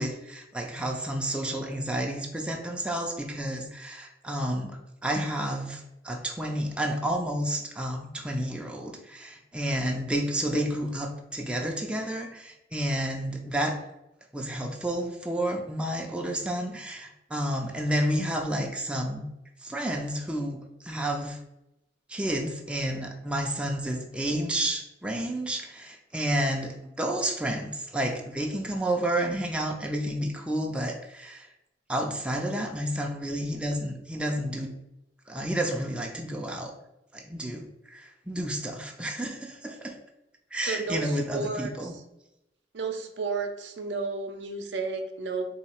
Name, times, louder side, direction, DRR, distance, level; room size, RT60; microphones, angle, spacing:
voice 1, 0.0-13.8 14.3-19.2 19.6-21.4 22.1-31.5 31.9-34.7 35.3-36.7 37.1-40.0 40.5-41.9, right 1 dB, 5° right, 1 dB, 0.4 m, -30 dB
voice 2, 40.7-41.7 42.7-45.5, right 4 dB, 65° right, 5 dB, 0.6 m, -32 dB
3.8 x 2.8 x 4.3 m, 0.88 s
head